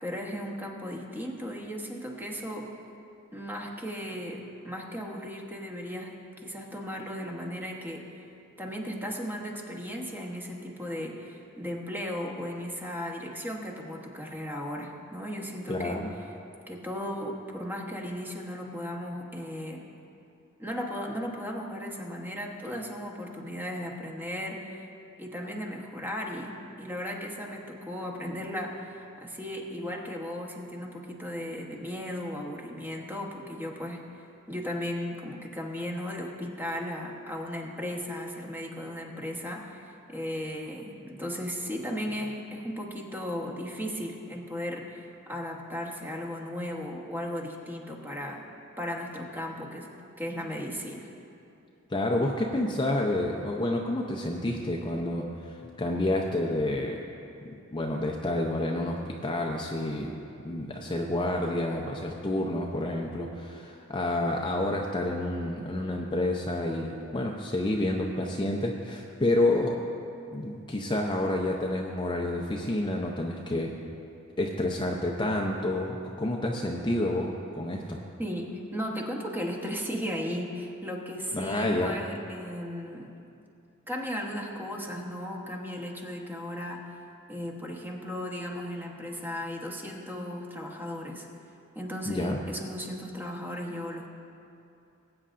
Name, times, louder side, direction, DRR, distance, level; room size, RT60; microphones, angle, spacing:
voice 1, 0.0-2.7 3.3-8.1 8.6-16.0 16.7-19.9 20.6-24.8 25.2-48.4 48.8-49.9 50.2-51.1 78.2-83.1 83.9-87.0 87.3-91.3 91.7-94.1, equal, 10° right, -1 dB, 1.1 m, -36 dB
voice 2, 15.7-16.1 51.9-57.0 57.4-60.1 60.4-69.8 70.3-73.7 74.4-78.0 81.3-82.1 92.0-92.4, left 1 dB, 20° left, 0 dB, 0.6 m, -29 dB
21.0 x 8.7 x 2.5 m, 2.6 s
head